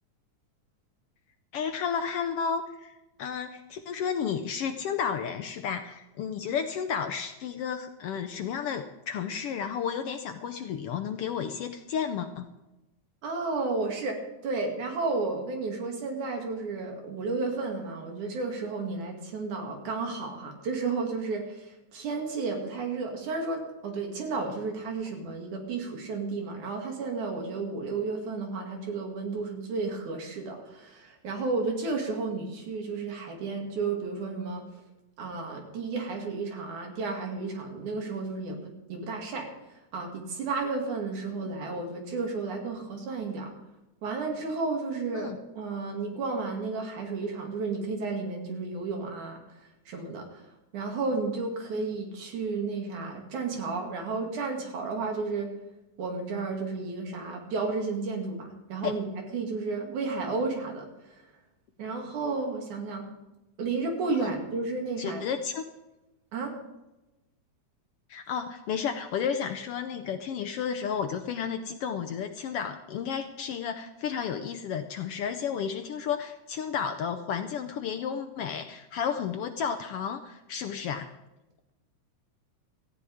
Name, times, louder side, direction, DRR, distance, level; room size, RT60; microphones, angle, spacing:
voice 1, 1.5-12.4 41.4-41.5 45.1-45.4 58.8-58.9 64.2-64.3 65.0-65.6 68.1-81.1, left 7 dB, 75° left, 7 dB, 1.4 m, -32 dB
voice 2, 13.2-34.6 35.2-43.5 44.0-49.4 49.9-50.5 50.7-55.5 56.0-61.3 61.8-63.1 63.6-65.3 66.3-66.6, right 3 dB, 80° right, 1 dB, 3.8 m, -32 dB
17.5 x 14.5 x 3.6 m, 0.98 s
omnidirectional pair, 3.4 m